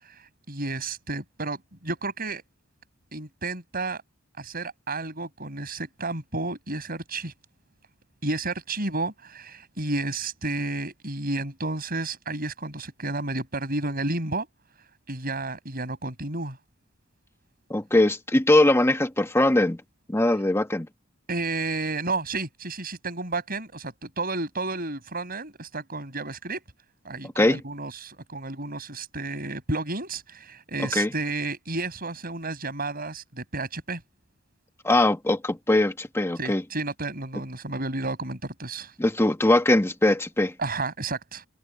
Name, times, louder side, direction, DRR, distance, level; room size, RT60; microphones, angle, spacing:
voice 1, 0.0-1.6 1.8-2.4 3.1-4.0 4.4-7.3 8.2-14.5 15.1-16.6 21.3-26.6 27.0-34.0 36.4-39.0 40.6-41.5, right 2 dB, 45° right, 7.0 m, -31 dB
voice 2, 17.7-19.8 20.1-20.9 27.4-27.6 30.8-31.1 34.8-36.6 39.0-40.5, left 1 dB, 10° left, 1.1 m, -21 dB
head